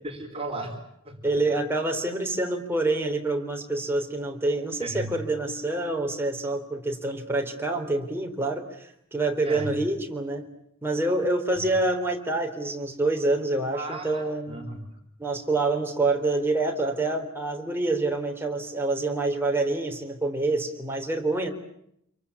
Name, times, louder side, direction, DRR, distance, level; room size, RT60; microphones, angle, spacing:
voice 1, 0.0-0.8 1.0-1.3 4.8-5.2 9.4-9.7 13.7-15.0, right 2 dB, 30° right, 3 dB, 4.7 m, -35 dB
voice 2, 1.2-10.4 10.8-14.6 15.2-21.5, right 2 dB, 10° right, 2 dB, 3.8 m, -27 dB
28.0 x 23.5 x 8.6 m, 0.74 s
head